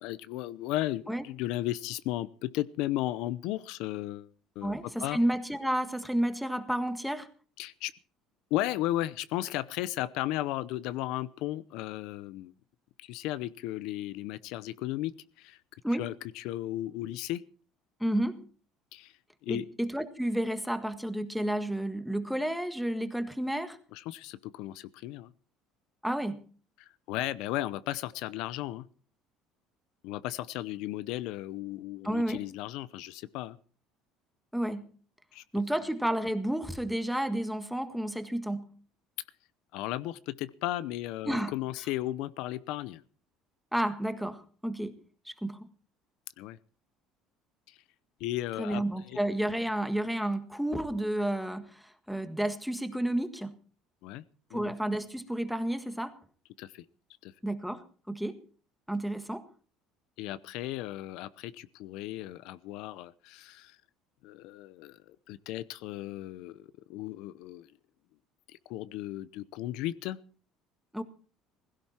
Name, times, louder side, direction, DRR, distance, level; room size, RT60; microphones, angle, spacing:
voice 1, 0.0-5.2 7.6-7.9 8.5-12.5 13.0-15.6 15.9-17.4 18.9-19.1 19.4-19.6 23.9-25.3 26.8-28.9 30.0-33.6 35.3-35.4 39.7-43.0 46.4-46.6 47.7-47.8 48.2-49.2 54.0-54.2 54.5-54.7 56.6-56.8 57.2-57.3 60.2-63.8 64.2-67.7 68.5-70.2, left 15 dB, 75° left, 0.7 m, -35 dB
voice 2, 4.6-7.3 15.8-16.1 18.0-18.5 19.5-23.8 26.0-26.4 32.0-32.4 34.5-34.9 35.5-38.7 41.2-41.5 43.7-45.0 45.2-45.7 48.6-53.6 54.5-56.2 57.4-58.4 58.9-59.5 70.9-71.0, right 1 dB, ahead, 1.7 m, -31 dB
16.5 x 16.5 x 4.4 m
supercardioid pair, 110°, 0 cm